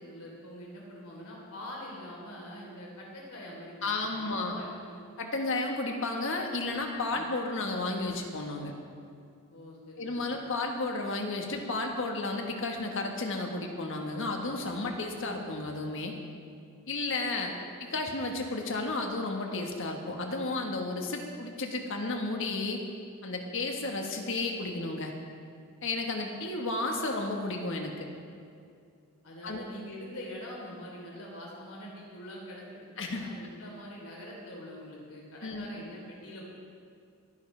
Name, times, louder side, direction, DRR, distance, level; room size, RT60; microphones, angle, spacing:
voice 1, 0.0-5.0 7.1-7.2 9.5-10.3 29.2-36.5, equal, 75° left, -3 dB, 3.7 m, -44 dB
voice 2, 3.8-4.6 5.2-8.7 10.0-16.1 16.9-17.5 17.8-22.8 23.2-25.1 25.8-28.1 29.4-29.6 33.0-33.2 35.4-35.7, left 2 dB, 60° left, 2 dB, 1.5 m, -32 dB
20.5 x 10.5 x 3.4 m, 2.4 s
head